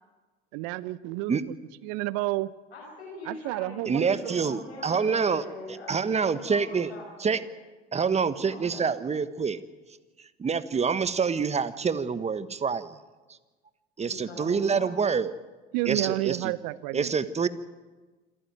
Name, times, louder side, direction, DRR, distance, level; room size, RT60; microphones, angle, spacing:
voice 1, 0.5-1.4 1.8-2.5 3.3-4.3 15.7-17.1, right 18 dB, 55° right, 19 dB, 0.9 m, -30 dB
voice 2, 2.7-7.3 8.4-8.9 14.0-15.0, left 1 dB, 85° left, -5 dB, 6.6 m, -42 dB
voice 3, 3.8-5.4 5.9-6.9 7.2-7.4 7.9-9.6 10.4-13.0 14.0-15.3 15.8-16.5 16.9-17.5, right 5 dB, 20° right, 13 dB, 1.3 m, -26 dB
27.0 x 14.5 x 9.2 m, 1.3 s
figure-of-eight pair, 70°, 32 cm